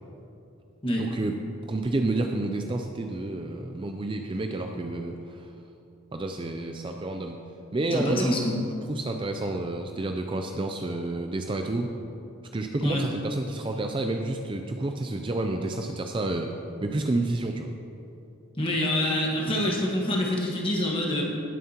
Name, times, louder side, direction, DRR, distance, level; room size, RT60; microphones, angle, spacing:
voice 1, 1.0-1.4 1.7-5.5 6.1-7.4 7.7-8.4 8.9-11.9 12.5-16.5 16.8-17.7, right 2 dB, 25° right, 4 dB, 0.4 m, -30 dB
voice 2, 7.9-8.6 12.8-13.1 18.6-21.2, left 1 dB, 25° left, -2 dB, 1.5 m, -26 dB
18.5 x 7.3 x 2.9 m, 2.7 s
head